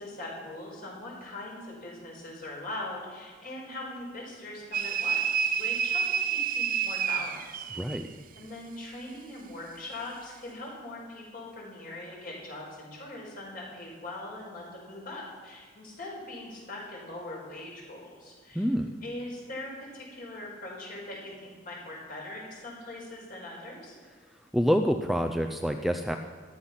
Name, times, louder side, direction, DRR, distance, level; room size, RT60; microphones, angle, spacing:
voice 1, 0.0-7.6 8.3-18.6 19.0-24.0, left 2 dB, 50° left, -3 dB, 5.0 m, -41 dB
sound 1, 4.7-8.1, right 7 dB, 50° right, 0.7 m, -29 dB
voice 2, 7.7-8.1 18.5-19.0 24.5-26.2, equal, ahead, 4 dB, 0.5 m, -27 dB
14.5 x 11.5 x 5.8 m, 1.5 s
head